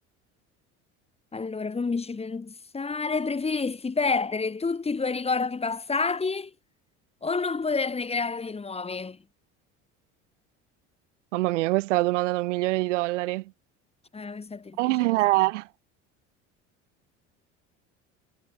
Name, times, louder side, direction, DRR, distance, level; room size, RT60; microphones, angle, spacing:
voice 1, 1.3-6.5 7.2-9.2 14.1-15.2, left 4 dB, 15° left, 1.1 m, -29 dB
voice 2, 11.3-13.4 14.8-15.7, right 20 dB, 90° right, 0.7 m, -24 dB
hypercardioid pair, 80°, 35 cm